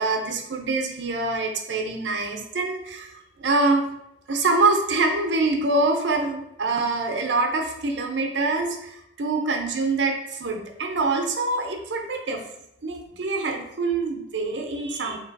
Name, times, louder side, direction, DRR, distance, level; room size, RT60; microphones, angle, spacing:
voice 1, 0.0-3.1 3.4-3.9 4.3-12.4 12.8-15.2, right 3 dB, 80° right, 3 dB, 0.7 m, -25 dB
3.3 x 2.9 x 4.5 m, 0.81 s
head